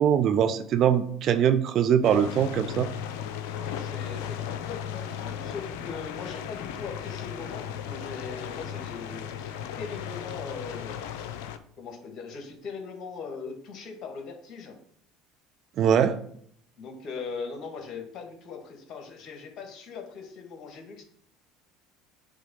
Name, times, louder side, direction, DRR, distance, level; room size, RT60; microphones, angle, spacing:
voice 1, 0.0-2.9 15.8-16.2, right 8 dB, 50° right, 10 dB, 0.6 m, -22 dB
sound 1, 2.0-11.6, left 9 dB, 70° left, 0.5 m, -36 dB
voice 2, 3.5-11.3 11.8-14.8 16.8-21.0, left 5 dB, 50° left, 3 dB, 1.7 m, -40 dB
7.5 x 3.6 x 5.4 m, 0.65 s
hypercardioid pair, 70°, 0 cm